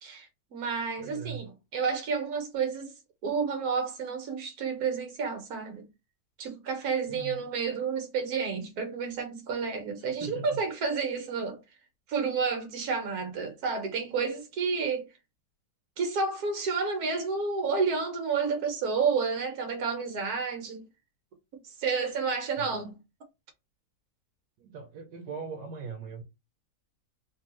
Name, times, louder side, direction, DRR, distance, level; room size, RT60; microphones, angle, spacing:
voice 1, 0.0-2.9 3.2-5.9 6.4-11.6 12.1-15.1 16.0-20.8 21.5-22.9, right 5 dB, 65° right, 1.4 m, -30 dB
voice 2, 1.0-1.5 7.1-7.5 10.0-10.6 22.6-22.7 24.6-26.2, right 5 dB, 80° right, 1.3 m, -40 dB
3.4 x 2.7 x 2.9 m
omnidirectional pair, 1.8 m